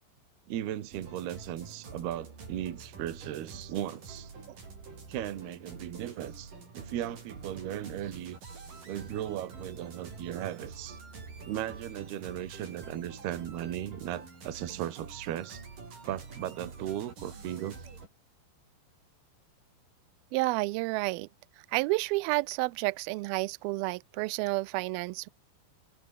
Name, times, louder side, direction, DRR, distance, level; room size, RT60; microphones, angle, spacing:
voice 1, 0.5-4.3 5.1-8.4 8.9-11.0 11.5-15.6 16.0-17.8, right 12 dB, 65° right, 3.7 m, -37 dB
sound 1, 0.9-18.1, right 4 dB, 50° right, 7.9 m, -47 dB
voice 2, 20.3-21.3 21.7-25.3, right 23 dB, 90° right, 2.1 m, -30 dB
omnidirectional pair, 5.1 m